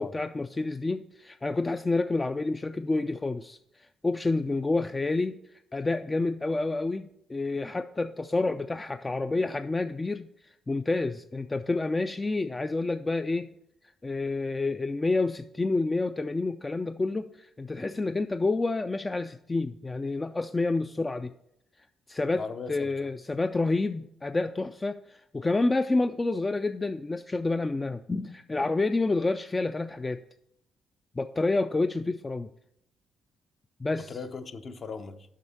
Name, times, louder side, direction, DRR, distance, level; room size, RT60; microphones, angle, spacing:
voice 1, 0.0-5.4 5.7-13.5 14.0-21.3 22.1-22.4 22.7-30.2 31.2-32.5 33.8-34.2, left 3 dB, 20° left, 0.3 m, -29 dB
voice 2, 22.3-23.1 34.1-35.3, left 5 dB, 45° left, 0.7 m, -38 dB
7.4 x 5.5 x 6.9 m
cardioid pair, 90°, 0 cm